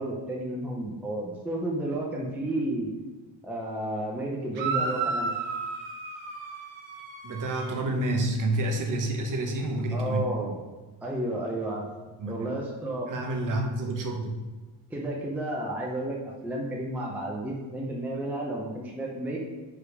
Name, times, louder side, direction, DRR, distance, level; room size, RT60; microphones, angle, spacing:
voice 1, 0.0-2.9 3.4-5.3 9.9-10.6 11.0-11.9 12.3-13.1 14.9-16.2 16.4-19.4, right 1 dB, 5° right, -2 dB, 0.6 m, -32 dB
sound 1, 4.5-7.8, right 4 dB, 65° right, 1.1 m, -32 dB
voice 2, 7.2-10.3 12.2-12.5 13.1-14.4, right 1 dB, 40° right, 2 dB, 1.0 m, -29 dB
5.0 x 4.9 x 4.8 m, 1.3 s
cardioid pair, 175°, 48 cm